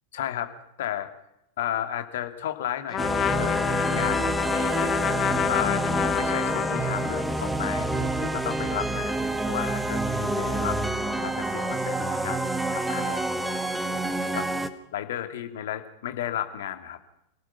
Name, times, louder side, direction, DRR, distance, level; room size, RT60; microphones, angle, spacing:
voice 1, 0.1-0.5 0.8-1.1 1.6-3.5 3.9-4.9 5.5-5.9 6.2-9.2 9.5-13.4 14.3-14.5 14.9-17.0, left 11 dB, 55° left, 7 dB, 2.5 m, -33 dB
Trumpet, 2.9-7.5, left 11 dB, 30° left, 0.8 m, -28 dB
sound 1, 3.0-14.7, right 2 dB, 5° right, 1.5 m, -28 dB
28.5 x 18.0 x 5.9 m, 0.82 s
figure-of-eight pair, 90°, 0 cm